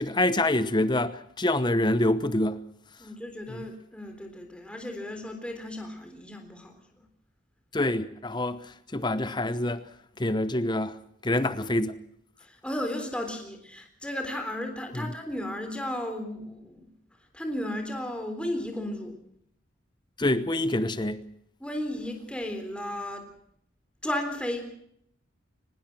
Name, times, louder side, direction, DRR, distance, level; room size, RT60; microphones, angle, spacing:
voice 1, 0.0-2.6 3.5-3.6 7.7-9.8 10.2-11.0 11.2-12.0 14.9-15.1 20.2-21.2, left 1 dB, 25° left, 0.9 m, -26 dB
voice 2, 3.0-7.0 12.4-16.9 17.3-19.2 21.6-23.2 24.0-24.8, left 1 dB, 5° left, 3.7 m, -34 dB
24.5 x 20.5 x 6.2 m
head